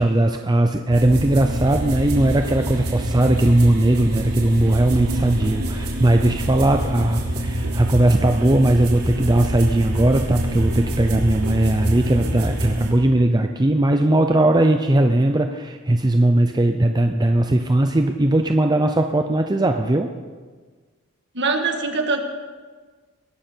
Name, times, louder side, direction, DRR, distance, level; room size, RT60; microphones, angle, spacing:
voice 1, 0.0-20.1, right 1 dB, 20° right, 5 dB, 0.6 m, -19 dB
sound 1, 0.9-12.9, right 1 dB, 80° right, 3.2 m, -26 dB
voice 2, 21.3-22.2, right 4 dB, 55° right, 4 dB, 1.7 m, -22 dB
21.5 x 12.0 x 4.5 m, 1.4 s
head